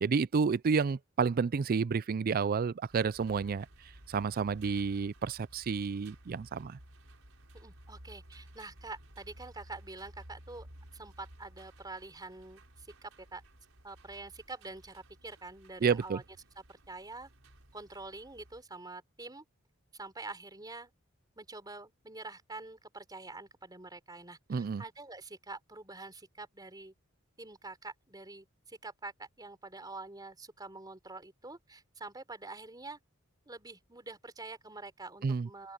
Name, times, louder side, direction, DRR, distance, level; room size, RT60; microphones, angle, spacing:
voice 1, 0.0-3.7 4.1-6.8 15.8-16.2 24.5-24.8 35.2-35.5, right 5 dB, 45° right, 0.4 m, -30 dB
sound 1, 2.9-18.6, right 1 dB, 70° right, 6.6 m, -56 dB
voice 2, 7.5-10.7 10.9-13.4 13.8-16.2 16.7-17.3 17.7-19.4 19.9-20.9 21.4-26.9 27.4-33.0 33.5-35.7, right 3 dB, 20° right, 3.6 m, -46 dB
open air
head